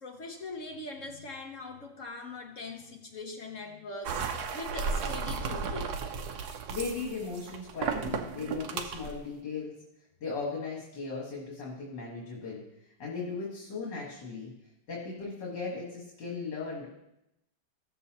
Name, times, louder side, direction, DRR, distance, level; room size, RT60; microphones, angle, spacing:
voice 1, 0.0-6.0, left 3 dB, 50° left, 2 dB, 1.2 m, -42 dB
sound 1, 4.0-9.2, right 5 dB, 65° right, 1.2 m, -34 dB
voice 2, 6.7-9.8 10.2-14.5 14.9-16.9, left 4 dB, 65° left, -4 dB, 2.3 m, -37 dB
16.0 x 6.8 x 2.9 m, 0.86 s
omnidirectional pair, 2.1 m